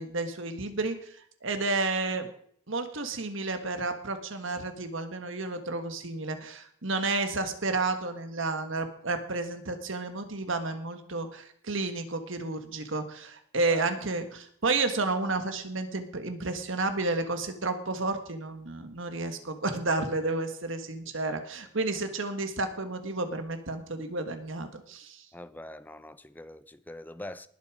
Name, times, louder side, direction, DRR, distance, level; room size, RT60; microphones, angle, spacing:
voice 1, 0.0-2.3 2.7-25.3, right 3 dB, 60° right, 1.7 m, -31 dB
voice 2, 25.3-27.5, left 1 dB, 10° left, 0.5 m, -43 dB
20.0 x 6.7 x 5.0 m
head